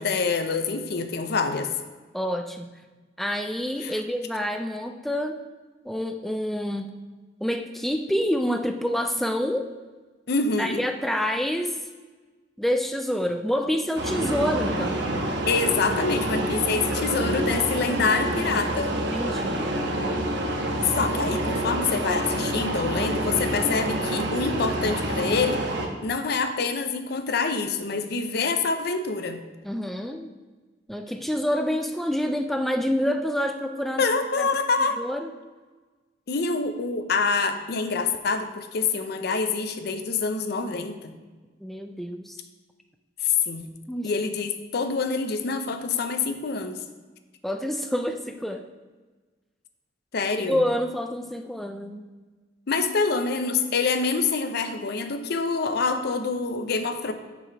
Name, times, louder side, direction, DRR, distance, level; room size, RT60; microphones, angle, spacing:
voice 1, 0.0-1.7 3.8-4.0 10.3-10.8 15.5-18.9 20.9-25.6 26.0-29.4 34.0-35.0 36.3-41.1 43.2-43.7 44.0-46.8 50.1-50.6 52.7-57.1, left 4 dB, 60° left, 8 dB, 0.6 m, -26 dB
voice 2, 2.1-2.7 3.2-5.4 5.8-7.0 7.4-9.7 10.6-11.8 12.6-15.1 17.5-18.8 19.1-19.7 29.6-30.3 30.9-34.1 34.4-34.5 35.0-35.3 41.6-42.4 43.9-44.1 47.4-48.6 50.4-52.0, equal, ahead, 5 dB, 0.3 m, -28 dB
sound 1, 14.0-25.9, right 1 dB, 70° right, 1.0 m, -27 dB
6.1 x 5.8 x 4.5 m, 1.3 s
head